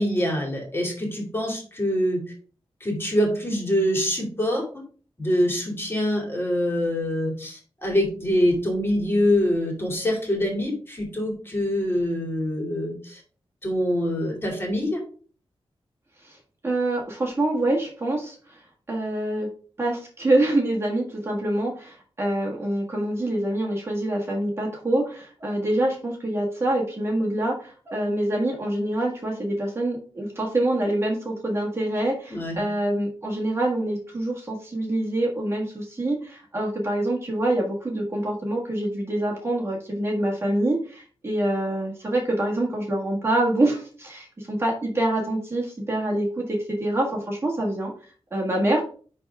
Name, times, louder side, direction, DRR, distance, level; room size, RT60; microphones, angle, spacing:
voice 1, 0.0-2.2 2.8-4.6 5.2-13.2 13.6-15.0 32.3-32.6, equal, 20° left, 0 dB, 2.5 m, -25 dB
voice 2, 16.6-18.6 18.9-19.5 19.8-47.9 48.3-48.8, right 1 dB, 25° right, -2 dB, 1.5 m, -25 dB
10.5 x 3.5 x 3.5 m, 0.41 s
wide cardioid pair, 160°, 10 cm